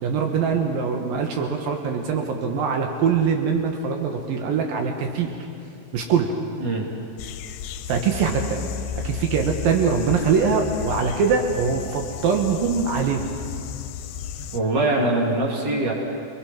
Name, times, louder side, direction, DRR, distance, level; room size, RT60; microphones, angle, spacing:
voice 1, 0.0-5.3 5.9-6.4 7.9-13.3, right 6 dB, 80° right, 3 dB, 3.0 m, -23 dB
sound 1, 7.2-14.6, left 8 dB, 80° left, 2.3 m, -33 dB
voice 2, 14.4-15.9, right 2 dB, 30° right, -2 dB, 3.3 m, -23 dB
25.5 x 20.0 x 5.9 m, 2.6 s
omnidirectional pair, 4.2 m